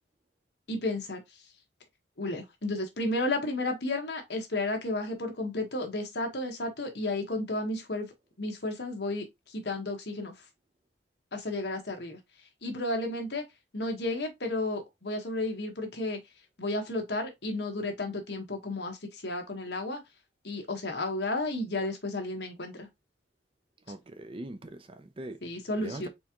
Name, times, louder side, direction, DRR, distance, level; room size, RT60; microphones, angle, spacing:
voice 1, 0.7-1.2 2.2-8.1 8.4-10.3 11.3-12.2 12.6-13.4 13.7-16.2 16.6-20.0 20.4-22.9 25.4-26.1, left 2 dB, 60° left, 1.3 m, -32 dB
voice 2, 23.9-25.4 25.8-26.1, right 1 dB, 30° right, 0.5 m, -41 dB
4.3 x 3.5 x 2.9 m
head